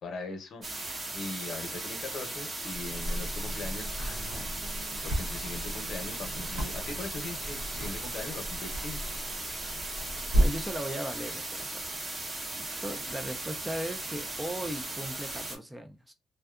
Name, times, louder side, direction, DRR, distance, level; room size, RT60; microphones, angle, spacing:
voice 1, 0.0-0.7 1.1-9.1 9.4-9.5, left 3 dB, 65° left, 0.7 m, -41 dB
sound 1, 0.6-15.6, right 2 dB, 35° right, 0.9 m, -37 dB
sound 2, 2.7-10.8, right 1 dB, 80° right, 0.9 m, -34 dB
voice 2, 10.4-12.2 12.6-16.1, right 1 dB, 10° right, 0.4 m, -38 dB
2.6 x 2.2 x 2.3 m
cardioid pair, 90°, 0 cm